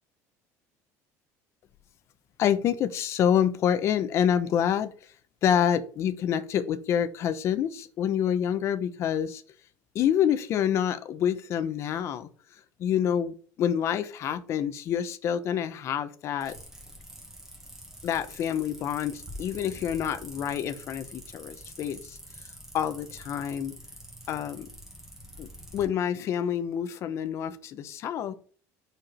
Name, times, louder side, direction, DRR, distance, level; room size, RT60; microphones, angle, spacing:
voice 1, 2.4-4.9 5.4-9.4 9.9-12.3 12.8-16.6 18.0-22.2 22.7-23.8 24.3-24.7 25.4-28.3, left 9 dB, 45° left, 11 dB, 0.8 m, -27 dB
sound 1, 16.4-25.8, equal, 5° right, 1.9 m, -46 dB
5.0 x 4.5 x 5.8 m, 0.43 s
cardioid pair, 150°, 7 cm